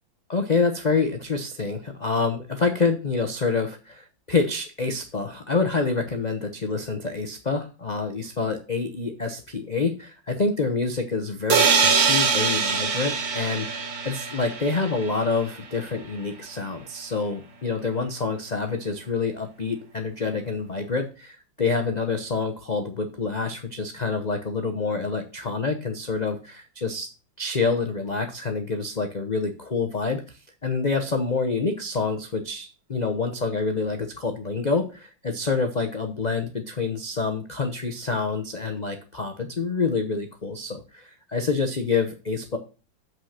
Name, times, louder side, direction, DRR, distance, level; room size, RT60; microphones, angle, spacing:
voice 1, 0.3-27.1 27.4-42.6, left 4 dB, 35° left, 6 dB, 0.7 m, -27 dB
sound 1, 11.5-15.3, right 5 dB, 70° right, 2.1 m, -23 dB
7.5 x 6.1 x 5.7 m, 0.33 s
omnidirectional pair, 2.1 m